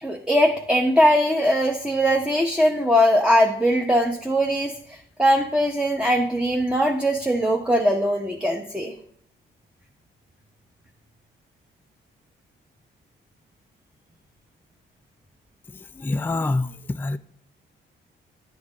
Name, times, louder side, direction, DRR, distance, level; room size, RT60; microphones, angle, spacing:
voice 1, 0.0-8.9, equal, 5° right, 1.0 m, -21 dB
voice 2, 16.0-17.2, left 2 dB, 10° left, 0.4 m, -26 dB
10.5 x 6.1 x 5.0 m
cardioid pair, 90°, 20 cm